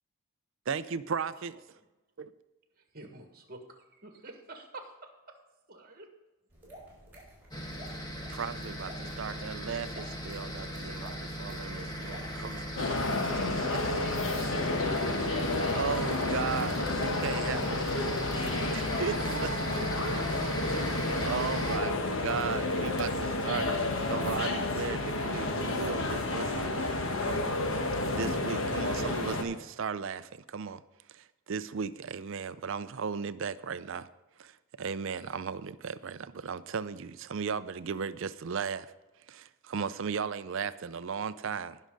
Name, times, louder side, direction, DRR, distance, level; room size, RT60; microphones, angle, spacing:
voice 1, 0.7-1.6 2.2-2.3 8.3-12.6 12.9-13.0 13.2-13.4 13.7-13.8 15.7-17.8 18.3-19.8 20.1-20.2 20.8-27.0 27.2-27.6 28.1-30.8 31.1-34.1 34.4-38.9 39.3-41.8, right 6 dB, 55° right, 14 dB, 0.4 m, -36 dB
voice 2, 2.8-4.8 5.3-5.4 5.7-6.1, right 2 dB, 40° right, 4 dB, 1.6 m, -48 dB
sound 1, 6.5-20.5, right 1 dB, 10° right, 4.6 m, -51 dB
sound 2, 7.5-21.8, equal, 15° left, 1.3 m, -37 dB
sound 3, 12.8-29.4, left 2 dB, 60° left, 1.2 m, -31 dB
voice 3, 14.5-16.4 16.8-17.6 18.3-19.5 20.3-21.0, left 1 dB, 75° left, 1 dB, 2.2 m, -42 dB
18.5 x 6.4 x 3.8 m, 1.1 s
head